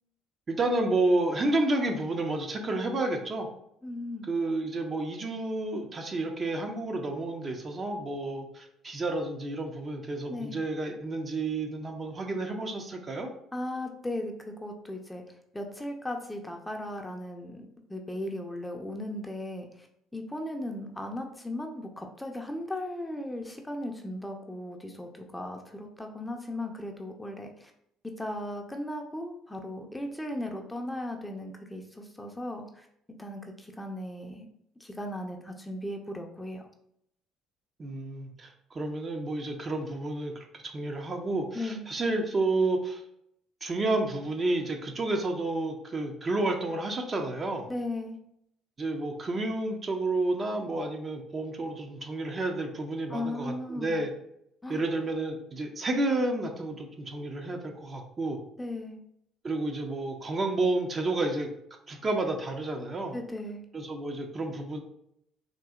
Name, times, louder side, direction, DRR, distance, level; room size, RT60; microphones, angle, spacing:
voice 1, 0.5-3.5 4.2-13.3 37.8-43.0 43.6-47.7 48.8-54.1 54.7-58.4 59.4-61.5 61.9-63.1 63.7-64.8, right 2 dB, 35° right, 3 dB, 0.6 m, -30 dB
voice 2, 3.8-4.3 10.3-10.6 13.5-15.2 15.5-19.9 20.1-27.7 28.0-32.9 33.2-34.5 34.8-36.7 41.5-41.8 47.7-48.2 53.1-54.0 54.6-54.8 58.6-59.0 63.1-63.6, left 1 dB, 10° left, 3 dB, 0.5 m, -37 dB
3.8 x 2.7 x 2.3 m, 0.73 s
hypercardioid pair, 60°, 0 cm